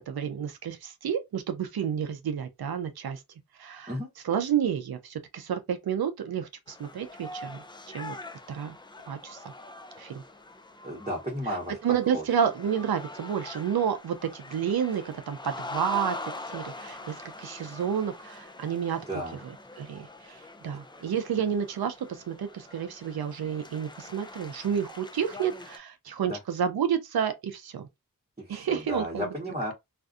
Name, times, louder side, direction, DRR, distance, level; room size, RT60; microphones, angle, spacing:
voice 1, 0.0-3.2 3.6-3.9 4.2-8.2 8.5-8.7 9.1-9.4 10.0-10.2 11.5-11.6 11.8-19.0 19.4-21.9 22.3-27.9 28.5-29.3, right 8 dB, 85° right, 0.5 m, -30 dB
sound 1, 6.7-25.8, left 2 dB, 15° left, 0.4 m, -43 dB
voice 2, 10.8-11.8 12.1-12.2 19.1-19.4 26.2-26.4 28.4-29.7, equal, 20° right, 1.0 m, -33 dB
2.5 x 2.3 x 2.3 m
wide cardioid pair, 45°, 36 cm